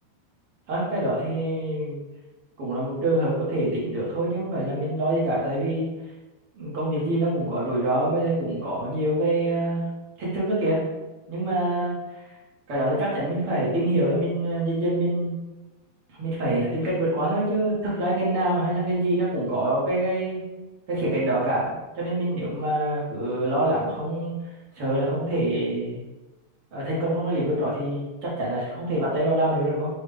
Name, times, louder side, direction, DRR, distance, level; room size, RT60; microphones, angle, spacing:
voice 1, 0.7-2.0 2.6-5.9 6.5-9.9 10.2-10.8 11.3-12.2 12.7-15.3 16.2-20.4 20.9-24.3 24.7-26.0 26.7-29.9, right 1 dB, 60° right, -7 dB, 1.5 m, -25 dB
6.1 x 2.4 x 3.3 m, 1.1 s
omnidirectional pair, 4.3 m